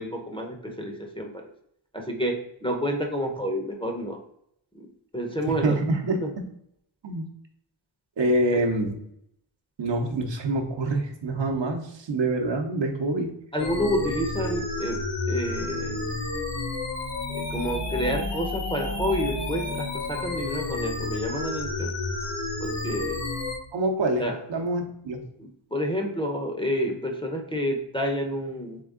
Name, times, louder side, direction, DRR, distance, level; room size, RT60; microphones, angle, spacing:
voice 1, 0.0-1.4 1.9-4.2 5.1-5.8 6.2-6.3 8.5-8.7 13.5-15.0 15.3-16.0 17.3-21.9 22.6-23.2 24.2-24.4 25.4-28.8, equal, 10° left, 0 dB, 0.7 m, -29 dB
voice 2, 5.6-6.4 7.0-7.2 8.2-9.0 9.8-13.3 23.7-25.3, right 2 dB, 60° right, 3 dB, 0.8 m, -26 dB
sound 1, 13.6-23.6, left 2 dB, 60° left, 1.1 m, -31 dB
3.7 x 3.4 x 3.6 m, 0.72 s
wide cardioid pair, 85°, 48 cm